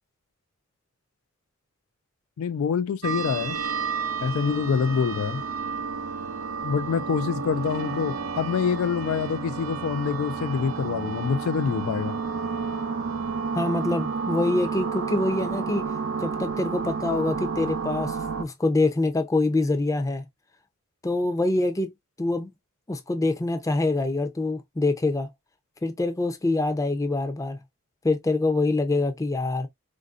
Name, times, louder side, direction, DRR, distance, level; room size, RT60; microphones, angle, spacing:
voice 1, 2.4-3.6 4.2-5.4 6.6-12.2, left 6 dB, 80° left, 0.3 m, -26 dB
sound 1, 3.0-18.4, right 5 dB, 85° right, 0.8 m, -31 dB
voice 2, 13.5-15.8 16.2-20.2 21.0-21.9 22.2-22.5 22.9-25.3 25.8-27.6 28.0-29.7, left 2 dB, 15° left, 0.5 m, -25 dB
4.0 x 2.6 x 2.3 m
head